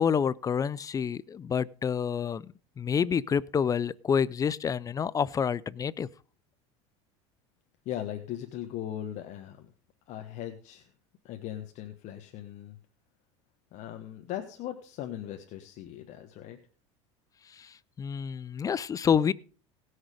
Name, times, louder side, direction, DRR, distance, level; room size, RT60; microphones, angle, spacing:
voice 1, 0.0-6.1 17.6-17.7 18.0-19.3, left 7 dB, 25° left, 21 dB, 0.4 m, -28 dB
voice 2, 7.8-9.7 10.1-10.9 11.2-12.8 13.7-16.6, left 11 dB, 55° left, 6 dB, 1.3 m, -39 dB
18.0 x 6.5 x 5.0 m, 0.40 s
supercardioid pair, 110°, 15 cm